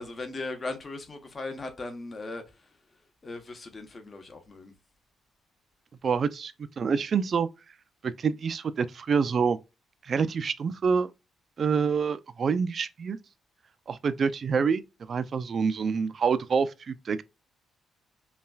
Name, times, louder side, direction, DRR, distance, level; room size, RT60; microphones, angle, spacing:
voice 1, 0.0-2.7 3.2-4.7, left 2 dB, 35° left, 0.9 m, -38 dB
voice 2, 6.0-7.5 8.0-9.6 10.0-11.1 11.6-13.2 13.9-14.8 15.1-17.2, right 6 dB, 45° right, 0.4 m, -27 dB
5.5 x 2.3 x 2.3 m
cardioid pair, 90°, 0 cm